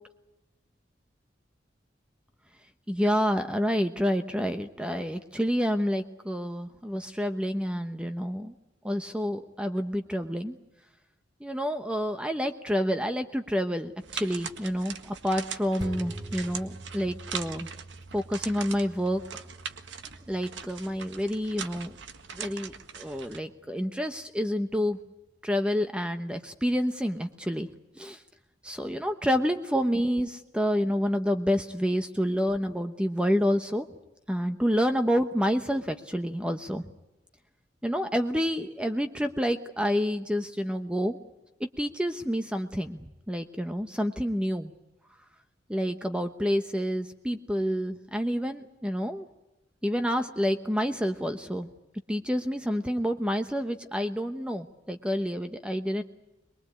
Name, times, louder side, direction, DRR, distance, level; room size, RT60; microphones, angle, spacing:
voice 1, 2.9-8.5 8.8-10.6 11.4-17.7 18.1-19.4 20.3-21.9 22.3-25.0 25.4-27.7 28.0-28.2 28.6-33.9 34.3-36.9 37.8-41.2 41.6-44.7 45.7-49.3 49.8-51.7 52.1-56.0, equal, 5° right, 7 dB, 1.0 m, -28 dB
sound 1, 14.0-23.4, right 7 dB, 80° right, 1.7 m, -41 dB
sound 2, 15.8-24.6 25.0-25.1, right 1 dB, 25° right, 2.8 m, -46 dB
23.5 x 22.5 x 8.7 m, 0.96 s
head